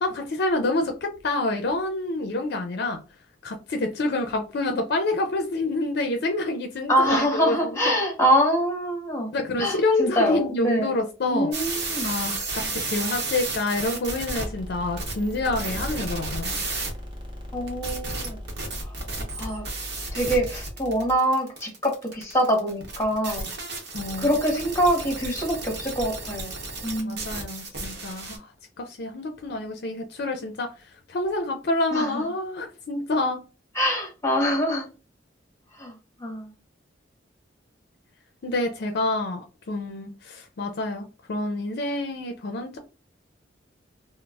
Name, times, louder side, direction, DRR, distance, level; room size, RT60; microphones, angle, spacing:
voice 1, 0.0-3.0 3.4-7.6 7.9-8.0 9.3-11.5 12.0-16.6 23.9-24.3 27.0-28.5 28.8-30.7 31.1-33.4 38.4-42.8, left 2 dB, 60° left, 0.5 m, -27 dB
voice 2, 6.9-9.3 9.6-11.0 11.3-12.1 17.5-18.4 18.8-18.9 19.4-19.6 20.1-23.5 24.2-27.4 31.9-32.2 33.7-34.9 35.8-35.9 36.2-36.5, equal, 15° left, 1.0 m, -25 dB
sound 1, 11.5-14.5 15.0-16.9 17.7-28.4, right 3 dB, 60° right, 0.9 m, -33 dB
sound 2, 14.3-21.2, equal, 25° right, 0.7 m, -39 dB
3.9 x 2.0 x 2.3 m
head